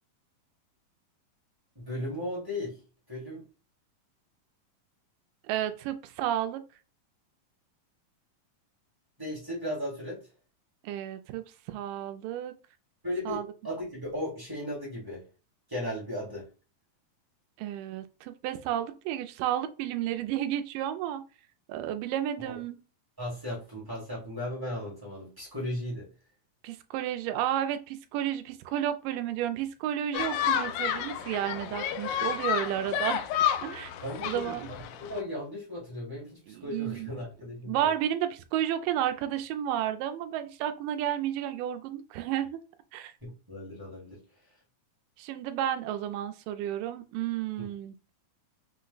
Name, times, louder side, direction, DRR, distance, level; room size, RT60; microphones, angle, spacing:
voice 1, 1.7-2.8 3.1-3.4 9.2-10.2 13.0-15.2 15.7-16.5 22.4-22.6 23.2-26.1 34.0-37.9 43.2-44.2 47.6-47.7, left 1 dB, 20° right, -6 dB, 0.5 m, -36 dB
voice 2, 5.4-6.6 10.8-12.5 13.3-13.5 17.6-21.2 21.7-22.8 26.6-33.2 33.6-33.9 34.3-34.7 36.5-37.1 37.7-42.6 42.9-43.1 45.2-47.9, right 11 dB, 80° right, 9 dB, 2.0 m, -32 dB
sound 1, 30.1-35.2, left 9 dB, 90° left, 2.4 m, -30 dB
5.7 x 2.1 x 3.9 m, 0.33 s
omnidirectional pair, 4.1 m